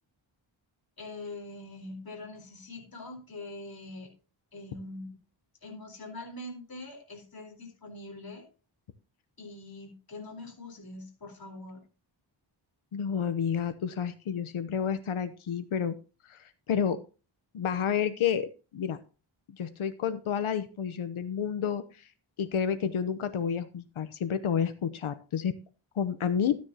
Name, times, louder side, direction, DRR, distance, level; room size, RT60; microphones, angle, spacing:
voice 1, 1.0-4.1 4.5-5.1 5.6-8.5 9.4-11.8, left 2 dB, 45° left, 2 dB, 4.0 m, -43 dB
voice 2, 12.9-16.0 16.3-17.0 17.5-18.5 18.7-19.0 19.5-21.8 22.4-25.5 26.0-26.6, left 7 dB, 90° left, 11 dB, 0.9 m, -30 dB
13.0 x 9.6 x 2.8 m, 0.34 s
cardioid pair, 70°, 48 cm